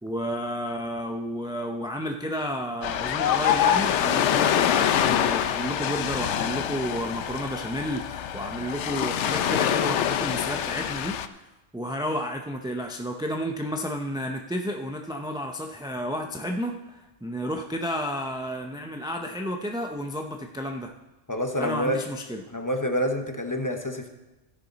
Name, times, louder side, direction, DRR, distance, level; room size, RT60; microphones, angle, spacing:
voice 1, 0.0-11.4 11.7-20.9 21.6-22.4, equal, 5° right, 3 dB, 0.4 m, -31 dB
Ocean, 2.8-11.3, left 9 dB, 85° left, 0.9 m, -25 dB
voice 2, 21.3-22.0 22.5-24.1, equal, 20° left, 4 dB, 0.9 m, -27 dB
13.5 x 10.0 x 4.0 m, 1.0 s
omnidirectional pair, 1.2 m